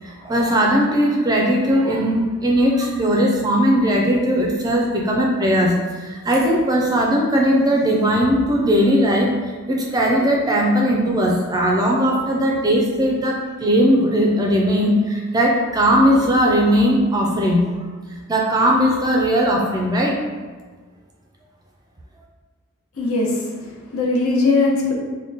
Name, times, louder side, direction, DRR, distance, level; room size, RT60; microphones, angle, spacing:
voice 1, 0.0-9.3 9.7-17.6 18.3-20.2, equal, 15° right, -1 dB, 0.4 m, -18 dB
voice 2, 23.0-24.9, left 3 dB, 70° left, -1 dB, 0.7 m, -20 dB
3.6 x 2.2 x 3.8 m, 1.4 s
head